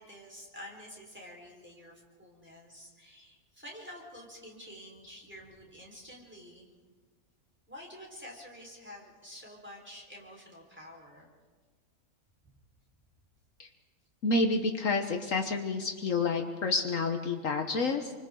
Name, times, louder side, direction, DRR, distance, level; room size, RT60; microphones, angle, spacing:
voice 1, 0.0-1.9 2.2-6.7 7.7-11.3, equal, 5° right, -3 dB, 4.6 m, -49 dB
voice 2, 14.2-18.1, left 3 dB, 65° left, 5 dB, 1.6 m, -29 dB
28.5 x 25.0 x 3.9 m, 1.5 s
omnidirectional pair, 1.5 m